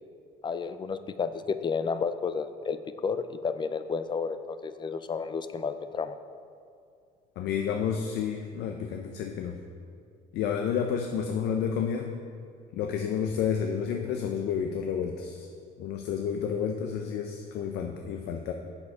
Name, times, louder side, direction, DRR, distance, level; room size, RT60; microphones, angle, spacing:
voice 1, 0.4-6.2, left 5 dB, 25° left, 11 dB, 0.4 m, -31 dB
voice 2, 7.4-9.6 10.3-12.1 12.7-15.5 15.8-18.5, left 7 dB, 80° left, 4 dB, 0.6 m, -30 dB
7.0 x 6.6 x 4.8 m, 2.4 s
cardioid pair, 110°, 17 cm